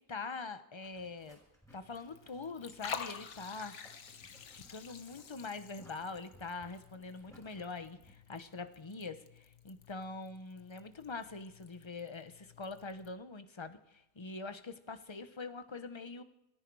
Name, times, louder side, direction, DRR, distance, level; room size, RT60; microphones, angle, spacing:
voice 1, 0.1-1.4 1.7-3.7 4.5-16.2, left 4 dB, 25° left, 10 dB, 0.9 m, -44 dB
Boiling, 0.8-8.1, equal, ahead, 6.0 m, -63 dB
Liquid, 1.7-13.1, left 7 dB, 60° left, 1.3 m, -50 dB
28.0 x 10.5 x 4.7 m, 0.90 s
omnidirectional pair, 1.4 m